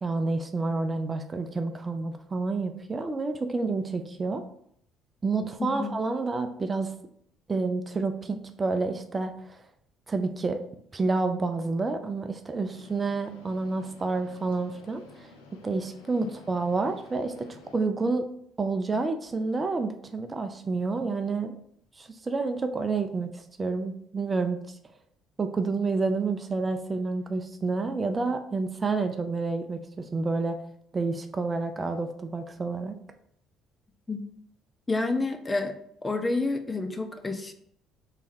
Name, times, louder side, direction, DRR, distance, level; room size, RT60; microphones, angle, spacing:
voice 1, 0.0-4.4 5.2-6.9 7.5-9.6 10.1-10.6 10.9-15.0 15.6-18.3 18.6-21.5 22.0-24.6 25.4-30.6 30.9-33.0, right 3 dB, 30° right, 7 dB, 0.6 m, -29 dB
voice 2, 5.6-5.9 16.2-16.3 34.1-34.2 34.9-35.7 36.0-37.5, left 3 dB, 25° left, 7 dB, 0.6 m, -29 dB
sound 1, 12.7-17.8, left 2 dB, 85° left, 0.7 m, -51 dB
3.5 x 3.2 x 4.2 m, 0.68 s
hypercardioid pair, 55°, 0 cm